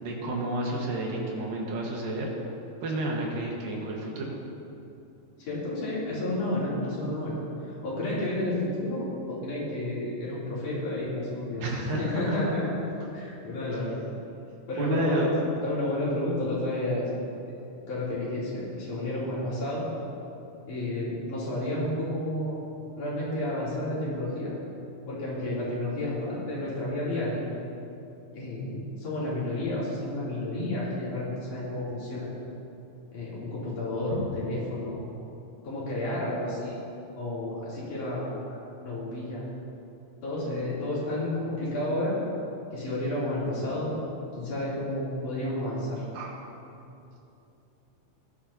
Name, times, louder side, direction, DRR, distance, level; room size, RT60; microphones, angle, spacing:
voice 1, 0.0-2.3 2.8-4.4 11.6-12.3 14.8-15.3 34.1-34.3 46.1-46.4, right 2 dB, 80° right, -2 dB, 3.3 m, -31 dB
voice 2, 5.4-7.4 7.8-12.7 13.1-14.0 14.7-15.3 15.6-17.0 17.5-17.6 17.9-19.9 20.7-22.6 23.0-24.5 25.1-27.4 28.3-32.3 33.1-35.0 35.6-36.8 37.2-39.4 40.2-42.2 42.7-44.0 44.4-46.0, left 1 dB, 60° left, -9 dB, 4.6 m, -31 dB
17.5 x 11.5 x 2.9 m, 2.8 s
omnidirectional pair, 4.0 m